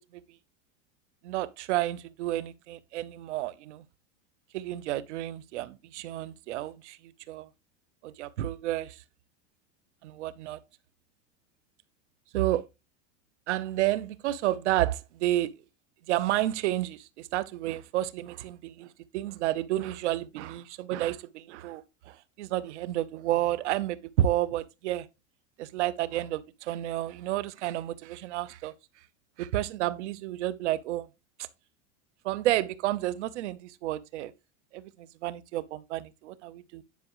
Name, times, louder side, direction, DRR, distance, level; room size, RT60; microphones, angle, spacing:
voice 1, 1.2-3.8 4.5-7.0 7.3-7.5 8.0-9.0 10.0-10.6 12.3-12.6 13.5-15.5 16.1-25.1 25.6-28.7 29.4-31.1 32.2-34.3 34.7-36.8, right 14 dB, 90° right, 0.9 m, -31 dB
10.5 x 5.7 x 3.0 m
supercardioid pair, 135°, 34 cm